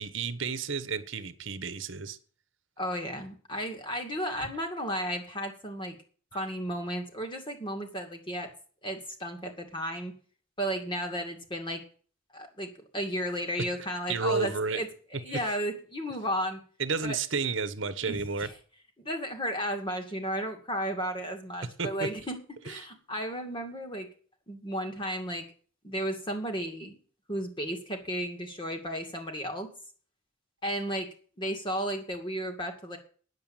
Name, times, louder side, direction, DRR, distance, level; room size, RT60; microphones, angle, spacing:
voice 1, 0.0-2.2 13.6-13.7 14.1-14.8 15.3-15.4 16.8-18.5 21.8-22.1 22.7-22.8, right 4 dB, 60° right, 1.1 m, -31 dB
voice 2, 2.8-6.0 6.3-8.5 8.8-10.1 10.6-11.8 12.3-16.6 17.0-17.2 18.0-18.2 19.0-22.4 22.6-24.1 24.5-25.5 25.8-27.0 27.3-29.7 30.6-31.1 31.4-33.0, equal, 20° left, 2.3 m, -34 dB
9.6 x 7.9 x 8.9 m
head